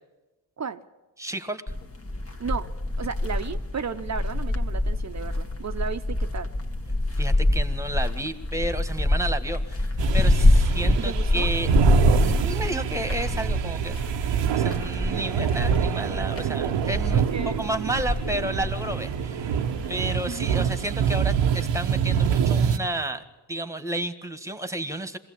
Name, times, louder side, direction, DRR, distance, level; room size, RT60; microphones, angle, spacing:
voice 1, 1.2-1.6 7.2-11.7 12.2-17.2 17.6-19.6 19.9-23.2 23.5-25.2, right 1 dB, 5° right, 10 dB, 1.6 m, -32 dB
sound 1, 1.7-20.2, left 1 dB, 30° left, 1.8 m, -26 dB
voice 2, 3.0-6.5 11.0-11.5 17.1-17.6 20.3-20.7, right 6 dB, 40° right, 10 dB, 0.9 m, -34 dB
sound 2, 10.0-22.8, right 7 dB, 80° right, 1.0 m, -25 dB
22.0 x 16.0 x 8.7 m, 1.1 s
cardioid pair, 70°, 44 cm